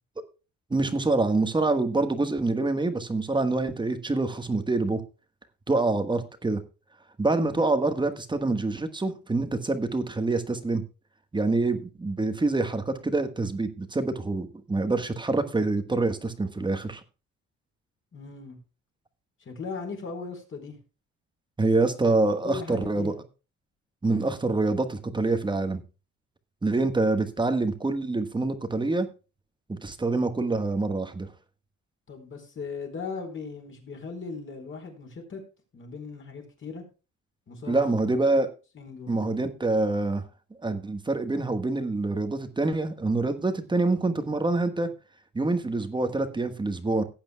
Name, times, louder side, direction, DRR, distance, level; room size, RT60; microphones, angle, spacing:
voice 1, 0.7-5.0 5.7-6.6 7.2-10.8 11.3-17.0 21.6-23.1 24.0-25.8 26.6-29.1 29.7-31.3 37.7-38.5 39.1-40.2 40.6-44.9 45.3-47.0, right 3 dB, 15° right, 1.3 m, -26 dB
voice 2, 18.1-18.6 19.4-20.8 22.3-23.2 32.1-35.4 35.7-36.8 37.5-38.2 38.7-39.2, left 4 dB, 40° left, 4.4 m, -38 dB
18.0 x 8.9 x 2.2 m
cardioid pair, 130°, 31 cm